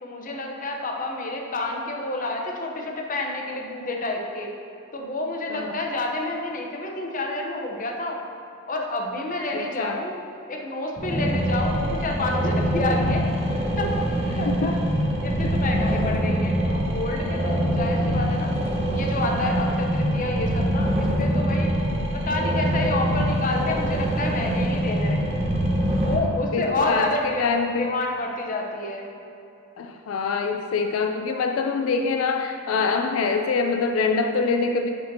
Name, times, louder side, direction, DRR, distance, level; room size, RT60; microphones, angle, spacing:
voice 1, 0.0-4.5 4.9-8.2 8.7-10.1 10.5-14.8 15.2-18.5 18.9-21.7 22.1-25.4 26.0-27.5 27.8-29.1, left 2 dB, 40° left, 1 dB, 0.8 m, -29 dB
voice 2, 9.5-10.0 14.5-14.7 26.5-27.9 29.8-34.9, left 4 dB, 85° left, 5 dB, 0.4 m, -25 dB
sound 1, 11.0-26.1, equal, 30° right, 1.0 m, -24 dB
10.5 x 5.1 x 2.7 m, 2.7 s
head